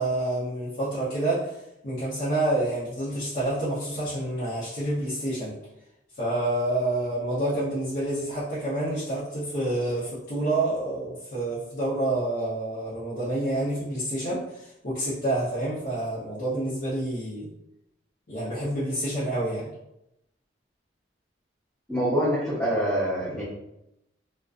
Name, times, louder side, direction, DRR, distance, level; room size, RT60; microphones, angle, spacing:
voice 1, 0.0-5.6 6.1-17.5 18.3-19.7, right 1 dB, 50° left, -11 dB, 0.7 m, -28 dB
voice 2, 21.9-23.4, equal, 10° left, -11 dB, 0.7 m, -25 dB
2.4 x 2.2 x 2.4 m, 0.85 s
head